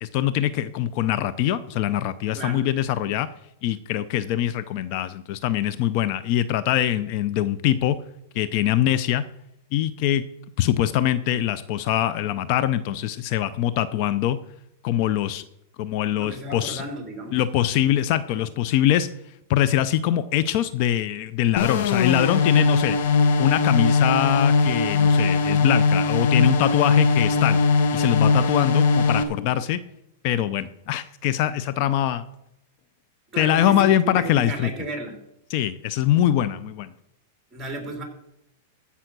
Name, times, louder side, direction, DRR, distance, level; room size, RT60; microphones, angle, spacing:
voice 1, 0.0-3.3 3.6-8.0 8.3-9.2 9.7-10.2 10.6-14.4 14.8-15.4 15.8-16.8 17.3-19.1 19.5-23.0 23.4-27.6 27.9-29.8 30.2-32.2 33.4-34.7 35.5-36.9, left 12 dB, 50° left, 14 dB, 0.6 m, -23 dB
voice 2, 16.2-17.4 29.4-29.6 33.3-35.2 37.5-38.0, right 1 dB, 15° right, 3 dB, 3.3 m, -34 dB
sound 1, 21.6-29.2, left 4 dB, 65° left, 1.5 m, -20 dB
14.5 x 5.6 x 6.1 m, 0.81 s
hypercardioid pair, 135°, 0 cm